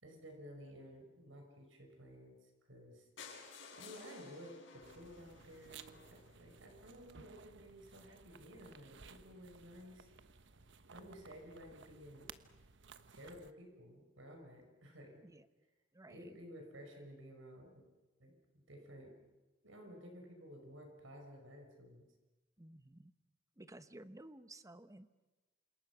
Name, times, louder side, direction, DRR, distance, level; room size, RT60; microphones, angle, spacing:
voice 1, 0.0-3.1 3.8-10.1 10.9-12.3 13.1-15.2 16.1-17.8 18.2-19.2 19.6-22.0, equal, 90° right, 3 dB, 5.7 m, -54 dB
sound 1, 3.2-7.1 7.7-7.8 8.0-8.2 8.4-8.5 8.7-8.8, left 5 dB, 70° left, 6.9 m, -56 dB
sound 2, 4.8-13.5, right 5 dB, 65° right, 1.2 m, -58 dB
voice 2, 15.9-16.4 22.6-23.1 23.6-25.1, right 1 dB, 15° right, 12 dB, 1.0 m, -55 dB
29.0 x 27.0 x 6.2 m, 1.2 s
head